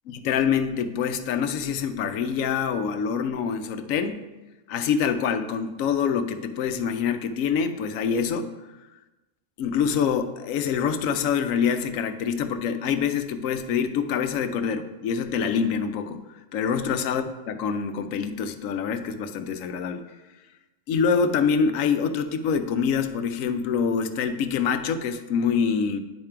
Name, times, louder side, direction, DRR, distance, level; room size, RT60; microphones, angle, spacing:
voice 1, 0.1-4.2 4.7-8.5 9.6-16.2 16.5-20.0 20.9-26.0, left 6 dB, 85° left, 9 dB, 1.0 m, -25 dB
10.5 x 3.6 x 4.4 m, 1.1 s
omnidirectional pair, 1.4 m